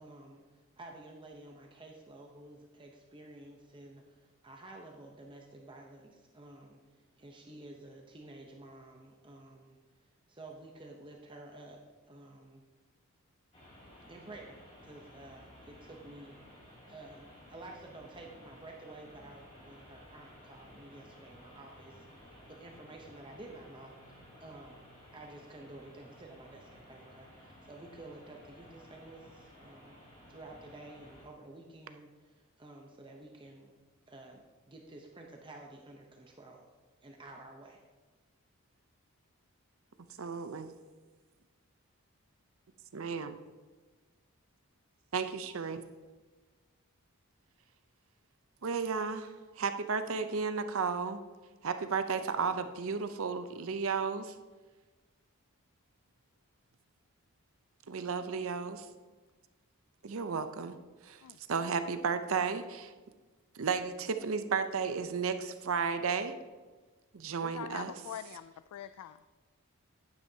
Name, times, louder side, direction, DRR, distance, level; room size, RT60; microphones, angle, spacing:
voice 1, 0.0-9.8 10.3-11.8 12.1-12.6 14.1-16.4 16.9-24.9 25.1-30.0 30.3-33.7 34.1-36.6 37.0-37.8, right 2 dB, 20° right, 1 dB, 0.7 m, -51 dB
sound 1, 13.5-31.2, left 1 dB, 30° left, 2.6 m, -55 dB
voice 2, 40.2-40.7 42.9-43.4 45.1-45.8 48.6-51.2 51.6-54.3 57.9-58.9 60.0-60.8 61.0-61.2 61.5-62.9 63.5-66.4 67.1-67.9, right 5 dB, 65° right, 10 dB, 0.6 m, -33 dB
voice 3, 67.4-69.2, left 10 dB, 90° left, 13 dB, 0.3 m, -44 dB
11.0 x 9.5 x 2.8 m, 1.3 s
head